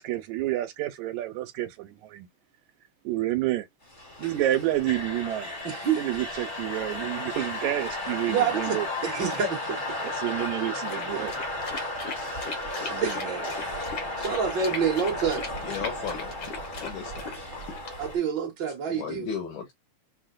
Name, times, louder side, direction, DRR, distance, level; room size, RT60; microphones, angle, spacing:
voice 1, 0.0-2.3 3.1-3.7 4.2-5.5 5.9-8.9 10.0-11.3 12.8-13.4, right 14 dB, 85° right, 2.0 m, -29 dB
sound 1, 3.9-18.2, left 1 dB, 30° left, 0.9 m, -34 dB
voice 2, 5.6-6.0 8.3-9.8 11.1-11.3 13.0-13.4 14.0-15.5 18.0-19.3, right 7 dB, 50° right, 1.6 m, -28 dB
sound 2, 10.9-18.2, left 4 dB, 65° left, 1.1 m, -39 dB
voice 3, 15.6-16.3 16.8-17.2 18.9-19.7, left 7 dB, 90° left, 2.6 m, -35 dB
6.0 x 2.1 x 2.5 m
omnidirectional pair, 3.3 m